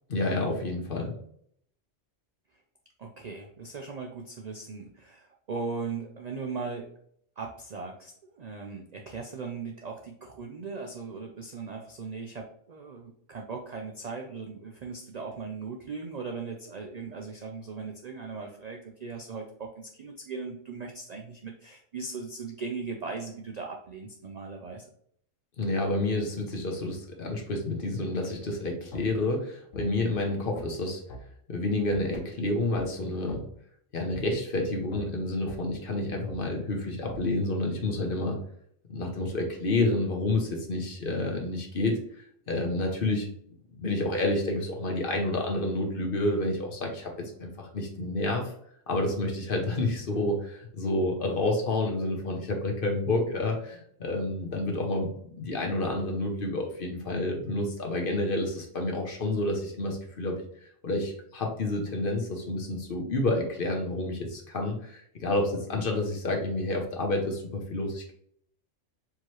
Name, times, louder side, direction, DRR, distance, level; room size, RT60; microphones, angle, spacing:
voice 1, 0.1-1.2 25.6-31.0 31.5-33.5 33.9-38.4 38.9-43.3 43.7-48.5 48.9-60.4 60.8-68.2, left 2 dB, 50° left, 2 dB, 0.9 m, -29 dB
voice 2, 3.0-6.9 7.4-24.9, right 4 dB, 70° right, 2 dB, 0.4 m, -38 dB
sound 1, 28.9-29.1 29.7-29.9 30.5-30.7 31.1-31.2 31.9-32.1 32.7-32.9 33.3-33.4 34.1-34.2 34.9-35.1 35.5-35.6 36.3-36.4 37.1-37.2, equal, 75° left, 1.1 m, -41 dB
4.7 x 2.9 x 3.0 m, 0.66 s
omnidirectional pair, 1.3 m